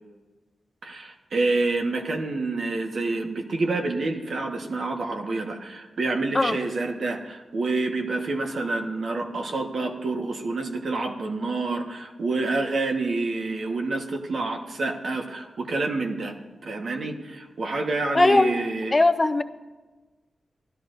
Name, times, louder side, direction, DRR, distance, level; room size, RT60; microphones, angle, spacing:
voice 1, 0.8-16.3 16.6-19.0, right 3 dB, 65° right, 4 dB, 1.3 m, -28 dB
voice 2, 18.1-18.5 18.9-19.4, left 2 dB, 25° left, 9 dB, 0.5 m, -19 dB
17.0 x 13.0 x 2.6 m, 1.2 s
wide cardioid pair, 85°, 0 cm